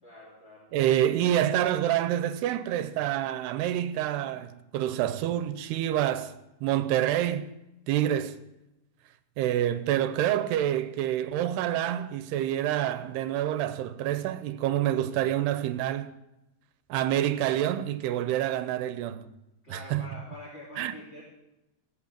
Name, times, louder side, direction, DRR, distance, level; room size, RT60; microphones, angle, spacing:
voice 1, 0.0-0.7 19.6-21.2, left 2 dB, 15° left, 2.8 m, -46 dB
voice 2, 0.7-6.3 6.6-7.5 7.9-8.4 9.4-16.1 16.9-19.3 19.7-20.1 20.8-20.9, right 12 dB, 80° right, 2.7 m, -27 dB
19.0 x 8.6 x 7.5 m
omnidirectional pair, 4.9 m